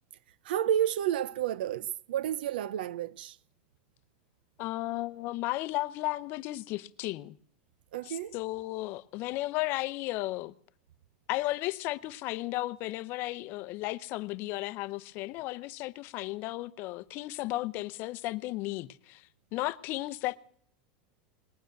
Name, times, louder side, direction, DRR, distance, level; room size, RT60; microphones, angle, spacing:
voice 1, 0.4-3.4 7.9-8.4, right 11 dB, 85° right, 0.5 m, -30 dB
voice 2, 4.6-7.4 8.1-10.5 11.3-20.4, left 18 dB, 45° left, 0.7 m, -34 dB
19.5 x 9.2 x 7.8 m
supercardioid pair, 145°, 5 cm